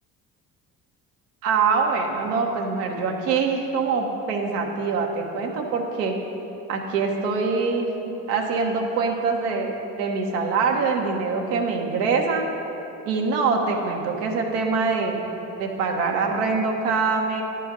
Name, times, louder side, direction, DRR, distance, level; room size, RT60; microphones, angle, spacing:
voice 1, 1.4-6.1 6.7-7.9 8.3-12.5 13.0-15.2 15.6-17.4, right 4 dB, 85° right, 2 dB, 1.2 m, -24 dB
11.0 x 4.5 x 6.6 m, 2.9 s
hypercardioid pair, 60°, 47 cm